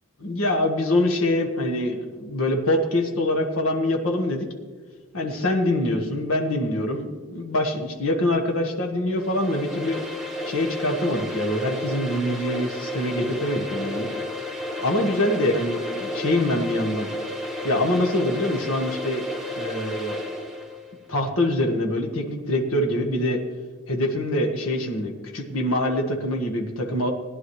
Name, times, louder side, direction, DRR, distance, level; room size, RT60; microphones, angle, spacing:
voice 1, 0.2-4.5 5.1-10.0 10.4-14.1 14.8-17.1 17.6-19.3 19.5-20.2 21.1-23.4 23.9-27.1, left 1 dB, 80° left, 3 dB, 1.6 m, -24 dB
sound 1, 9.1-20.8, left 1 dB, ahead, 1.4 m, -32 dB
17.5 x 10.5 x 3.2 m, 1.4 s
head